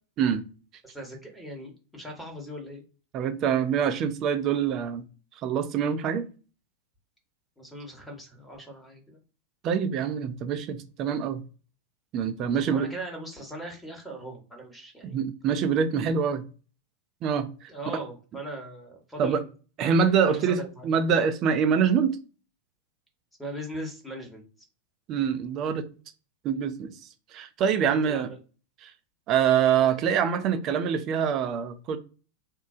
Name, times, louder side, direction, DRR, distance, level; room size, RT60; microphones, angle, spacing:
voice 1, 0.8-2.8 7.6-9.2 12.5-15.2 17.7-19.4 20.3-20.9 23.4-24.4 27.8-28.4, right 1 dB, 5° left, 1.1 m, -39 dB
voice 2, 3.1-5.0 5.4-6.2 9.6-11.4 12.1-12.9 15.0-16.4 17.2-17.7 19.2-19.4 19.8-22.2 25.1-25.9 26.4-26.9 27.3-28.3 28.8-28.9 29.3-32.0, right 7 dB, 35° right, 0.5 m, -25 dB
3.0 x 2.2 x 2.5 m
figure-of-eight pair, 90°, 0 cm